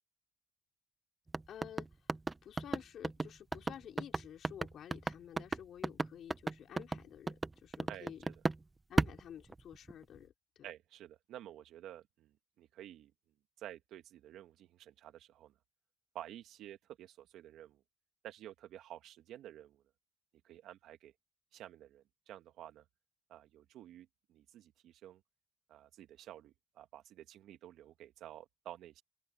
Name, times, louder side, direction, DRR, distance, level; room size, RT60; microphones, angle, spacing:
sound 1, 1.3-8.6 9.0-10.0, right 3 dB, 20° right, 1.1 m, -35 dB
voice 1, 1.5-2.1 2.4-8.3 8.9-10.7, left 9 dB, 65° left, 5.0 m, -51 dB
voice 2, 7.9-8.3 10.6-13.1 13.6-15.5 16.1-17.8 18.2-19.8 20.4-21.1 21.5-22.8 23.3-25.2 25.7-29.0, right 12 dB, 80° right, 1.9 m, -51 dB
open air
cardioid pair, 90°, 0 cm